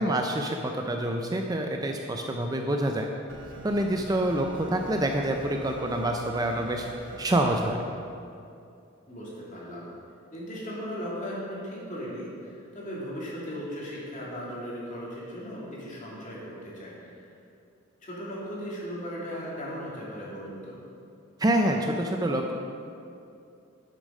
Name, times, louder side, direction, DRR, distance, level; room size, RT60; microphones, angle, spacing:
voice 1, 0.0-3.1 3.6-6.9 7.2-7.8 21.4-22.5, right 1 dB, 20° right, 3 dB, 0.5 m, -27 dB
sound 1, 3.3-7.7, right 1 dB, 70° right, 1.2 m, -44 dB
voice 2, 9.1-9.9 10.3-17.3 18.0-20.8, equal, 40° left, -6 dB, 2.4 m, -37 dB
8.3 x 7.2 x 5.4 m, 2.5 s
head